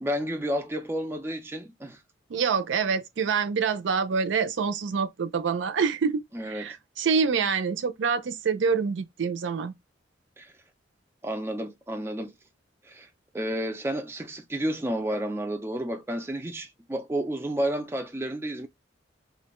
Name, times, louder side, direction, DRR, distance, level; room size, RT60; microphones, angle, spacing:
voice 1, 0.0-2.0 6.3-6.8 10.4-10.5 11.2-12.3 12.8-13.1 13.3-18.7, right 1 dB, 15° right, 0.3 m, -31 dB
voice 2, 2.3-9.7, right 5 dB, 80° right, 0.4 m, -26 dB
2.5 x 2.2 x 2.9 m
head